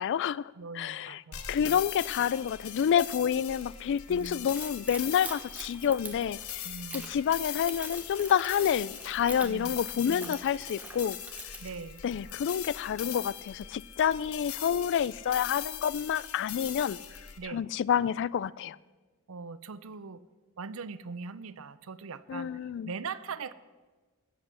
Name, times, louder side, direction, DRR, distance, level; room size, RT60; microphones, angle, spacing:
voice 1, 0.0-1.2 1.5-6.7 6.9-11.2 12.0-17.0 17.5-18.8 22.3-22.9, left 8 dB, 55° left, 0.3 m, -28 dB
voice 2, 0.6-1.8 3.5-3.7 4.1-4.5 6.6-7.1 9.4-9.8 10.1-10.3 11.6-12.0 17.4-17.6 19.3-20.2 20.6-23.5, right 5 dB, 70° right, 0.6 m, -41 dB
sound 1, 1.3-17.4, left 10 dB, 75° left, 0.9 m, -41 dB
Splash splatter / Trickle dribble, 4.1-12.5, right 2 dB, 5° right, 1.1 m, -45 dB
14.5 x 7.7 x 6.8 m
head